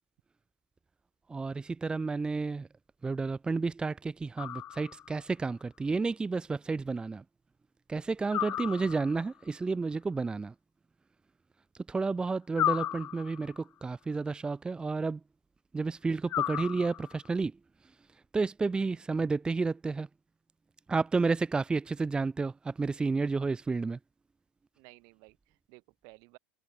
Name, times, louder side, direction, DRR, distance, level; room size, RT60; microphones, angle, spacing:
voice 1, 1.3-2.7 3.0-7.2 7.9-10.5 11.9-15.2 15.7-17.5 18.3-20.1 20.9-24.0, right 4 dB, 15° right, 1.0 m, -31 dB
sound 1, 4.4-5.2 8.3-9.3 12.5-13.6 16.3-17.3, left 12 dB, 35° left, 0.4 m, -34 dB
voice 2, 8.5-8.9 18.8-19.0 24.8-26.4, right 32 dB, 65° right, 5.3 m, -56 dB
supercardioid pair, 135°, 7 cm